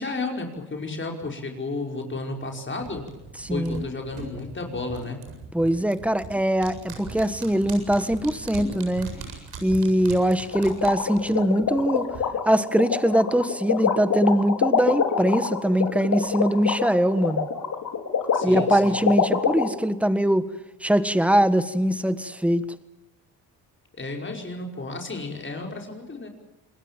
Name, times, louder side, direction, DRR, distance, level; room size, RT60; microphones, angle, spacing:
voice 1, 0.0-3.0 3.5-5.2 18.3-19.0 23.9-26.3, left 3 dB, 30° left, 2 dB, 5.2 m, -32 dB
sound 1, 2.8-12.2 12.5-12.6, right 4 dB, 70° right, 7.9 m, -39 dB
voice 2, 3.4-3.8 5.5-9.1 9.6-12.1 12.4-17.5 18.4-20.5 20.8-22.6, equal, 5° right, 13 dB, 1.5 m, -22 dB
Preparing the mixture, 10.5-19.6, left 7 dB, 55° left, 4.7 m, -24 dB
27.5 x 21.0 x 7.5 m, 0.96 s
cardioid pair, 95°, 39 cm